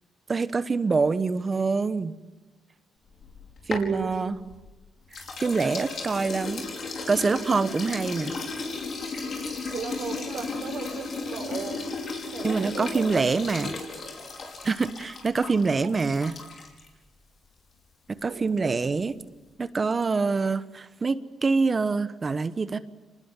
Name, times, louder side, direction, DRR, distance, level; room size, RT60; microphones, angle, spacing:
voice 1, 0.3-2.1 3.7-4.4 5.1-6.6 7.1-8.3 12.4-13.8 14.6-16.4 18.1-19.1 19.6-22.8, right 4 dB, 30° right, 12 dB, 1.1 m, -25 dB
sound 1, 3.1-4.7 5.1-16.9, left 3 dB, 50° left, 5.3 m, -35 dB
voice 2, 3.7-4.4 5.6-5.9 9.7-11.8 12.3-13.3 15.8-15.9 18.3-18.7, right 6 dB, 65° right, 6 dB, 4.9 m, -36 dB
26.5 x 19.5 x 9.9 m, 1.2 s
cardioid pair, 90°, 0 cm